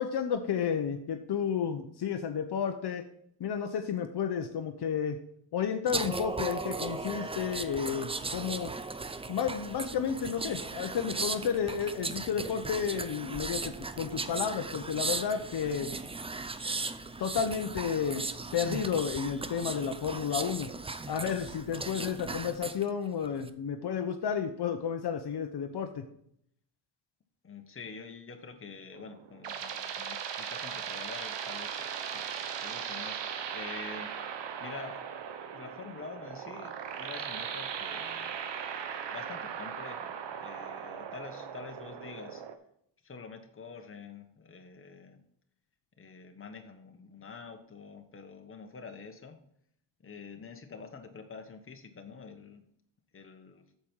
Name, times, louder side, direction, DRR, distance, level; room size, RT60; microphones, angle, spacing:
voice 1, 0.0-3.1 3.4-5.2 5.5-8.7 9.3-15.9 17.2-20.7 21.1-26.0, left 7 dB, 60° left, 6 dB, 0.8 m, -32 dB
sound 1, 5.9-22.8 23.2-23.5, right 3 dB, 15° right, 0.4 m, -37 dB
voice 2, 27.4-31.9 32.1-34.1 34.6-35.0 35.5-38.4 39.1-42.4 43.0-45.2 46.0-49.4 50.0-52.6 53.1-53.6, left 5 dB, 30° left, 5 dB, 1.2 m, -47 dB
sound 2, 28.9-42.6, right 7 dB, 70° right, 1.0 m, -38 dB
8.5 x 6.9 x 4.6 m, 0.69 s
wide cardioid pair, 145°, 44 cm